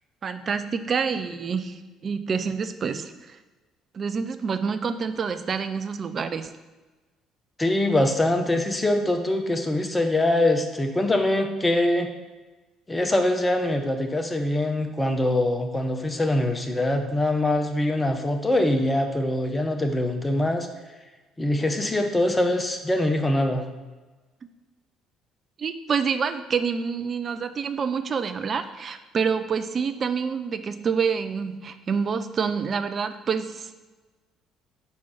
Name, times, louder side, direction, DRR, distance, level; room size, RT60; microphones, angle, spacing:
voice 1, 0.2-3.4 3.9-6.5 25.6-33.8, right 6 dB, 40° right, 10 dB, 0.5 m, -27 dB
voice 2, 7.6-12.1 12.9-20.7 21.4-23.6, left 1 dB, 15° left, 5 dB, 0.9 m, -23 dB
4.7 x 4.4 x 5.5 m, 1.2 s
figure-of-eight pair, 50°, 0 cm